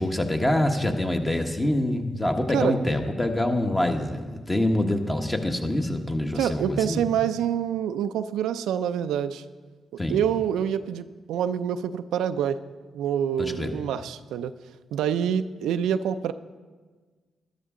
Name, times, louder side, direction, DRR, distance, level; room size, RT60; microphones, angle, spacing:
voice 1, 0.0-7.0 10.0-10.2 13.4-13.8, left 1 dB, 20° left, 4 dB, 1.4 m, -25 dB
voice 2, 6.3-9.4 9.9-12.6 12.9-14.5 14.9-16.3, right 9 dB, 90° right, 11 dB, 0.4 m, -26 dB
12.5 x 12.0 x 3.8 m, 1.4 s
supercardioid pair, 60°, 0 cm